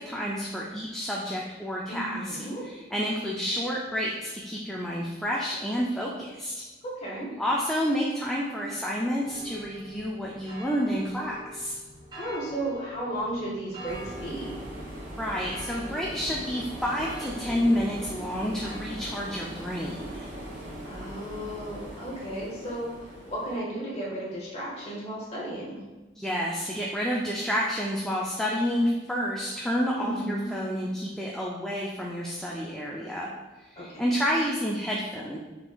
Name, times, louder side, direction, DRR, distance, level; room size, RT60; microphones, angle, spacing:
voice 1, 0.0-2.4 2.6-6.6 7.4-11.8 15.2-20.3 26.2-33.3 33.7-35.4, equal, 5° left, -4 dB, 0.3 m, -29 dB
voice 2, 1.9-2.6 6.8-7.3 12.1-14.6 20.8-25.8 30.0-30.5 33.8-34.1, right 1 dB, 35° left, -5 dB, 1.4 m, -34 dB
sound 1, 9.2-18.8, equal, 25° right, 0.9 m, -46 dB
sound 2, 13.9-23.6, right 1 dB, 45° right, 1.2 m, -40 dB
5.8 x 3.6 x 2.3 m, 1.2 s
head